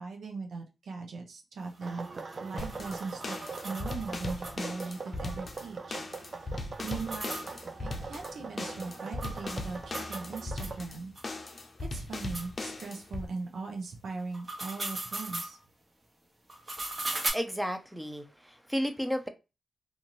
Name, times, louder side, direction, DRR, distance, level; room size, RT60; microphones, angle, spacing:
voice 1, 0.0-2.1 2.4-3.4 3.6-6.0 6.4-7.5 7.8-15.6, right 4 dB, 80° right, 0.8 m, -40 dB
sound 1, 1.6-4.9 5.2-5.3 5.5-5.6 6.7-10.8 11.2-11.3 11.8-11.9 12.3-12.5 14.2-15.6 16.5-17.3, right 2 dB, 30° right, 1.1 m, -39 dB
sound 2, 1.8-10.8, right 4 dB, 50° right, 0.4 m, -42 dB
sound 3, 2.6-13.3, left 2 dB, 45° left, 0.6 m, -39 dB
voice 2, 17.1-19.3, equal, 5° right, 0.6 m, -33 dB
2.6 x 2.5 x 3.0 m
cardioid pair, 65°, 0 cm